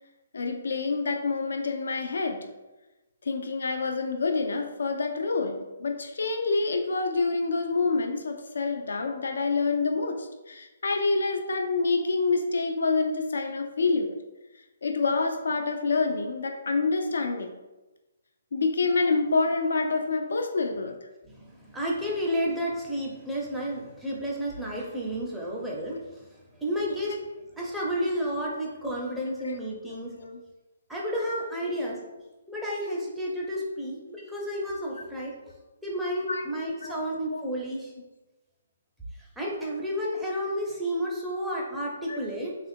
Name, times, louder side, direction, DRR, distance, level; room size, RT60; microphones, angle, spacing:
voice 1, 0.3-2.5 3.2-14.2 14.8-17.6 18.5-21.0 29.4-29.6 29.9-30.4 36.3-36.4 36.8-37.0 37.3-37.4 42.1-42.2, left 3 dB, 70° left, 4 dB, 0.5 m, -27 dB
voice 2, 21.3-26.3 26.5-27.2 27.6-30.1 30.9-32.0 32.5-35.5 35.8-37.9 39.4-42.6, equal, 5° right, -5 dB, 0.8 m, -31 dB
3.3 x 2.5 x 4.3 m, 1.1 s
figure-of-eight pair, 140°, 0 cm